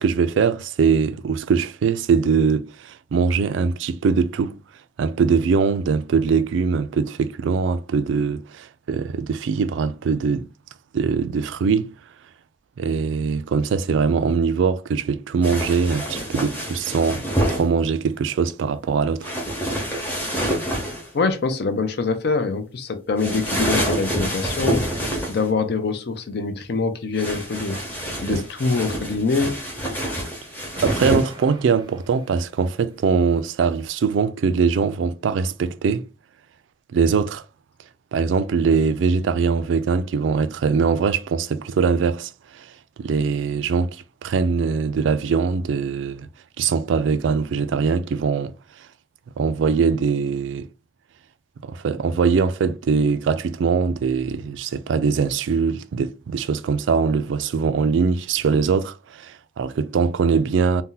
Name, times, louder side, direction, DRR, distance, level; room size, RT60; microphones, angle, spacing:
voice 1, 0.0-4.6 5.0-10.5 10.9-11.9 12.8-19.3 28.3-28.4 30.8-36.1 36.9-37.4 38.1-42.7 43.0-46.3 46.6-48.5 49.4-50.7 51.6-60.8, right 5 dB, 80° right, 0.3 m, -22 dB
sound 1, 15.4-17.6 19.2-21.1 23.2-25.5 27.2-31.3, right 1 dB, 10° left, 0.8 m, -27 dB
voice 2, 21.1-27.8 28.2-29.6, left 4 dB, 60° left, 0.5 m, -24 dB
Explosion, 30.7-32.9, right 2 dB, 25° right, 0.5 m, -43 dB
2.7 x 2.2 x 3.7 m
head